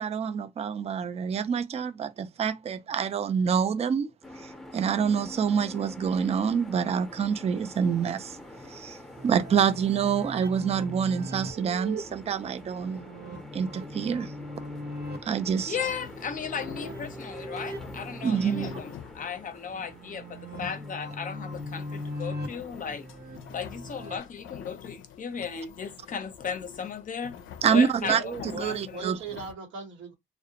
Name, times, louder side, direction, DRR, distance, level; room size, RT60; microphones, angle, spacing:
voice 1, 0.0-4.1 4.4-8.4 8.7-13.1 13.5-14.3 15.2-15.7 18.2-18.7 27.6-28.2 28.6-29.2, right 7 dB, 30° right, 0.4 m, -27 dB
sound 1, 4.2-23.8, left 1 dB, ahead, 0.7 m, -47 dB
sound 2, 9.2-24.2, equal, 50° right, 0.9 m, -40 dB
voice 2, 15.7-23.1 23.5-27.4 27.6-29.2, left 6 dB, 40° left, 0.6 m, -36 dB
sound 3, 15.8-29.5, left 9 dB, 80° left, 0.4 m, -47 dB
voice 3, 28.0-30.1, right 5 dB, 75° right, 1.0 m, -38 dB
2.3 x 2.1 x 2.8 m
cardioid pair, 90°, 20 cm